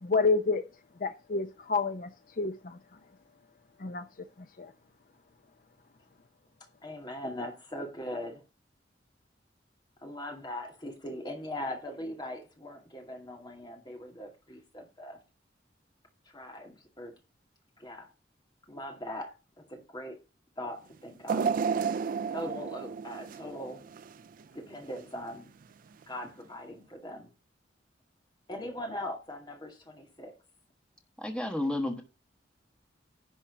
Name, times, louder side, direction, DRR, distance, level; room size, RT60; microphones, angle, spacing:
voice 1, 0.0-0.7 1.0-2.1 2.4-2.8 3.8-4.0 4.6-4.7, left 4 dB, 50° left, 0.6 m, -28 dB
voice 2, 6.8-8.4 10.0-15.2 16.3-17.1 17.8-18.1 18.7-20.2 20.6-21.5 22.3-23.8 24.5-25.5 26.1-27.3 28.5-30.3, left 1 dB, 25° left, 2.3 m, -40 dB
sound 1, 21.3-24.4 24.9-25.0 26.0-26.1, right 6 dB, 50° right, 0.4 m, -32 dB
voice 3, 31.2-32.0, left 1 dB, 5° left, 1.3 m, -31 dB
11.0 x 4.3 x 6.8 m
head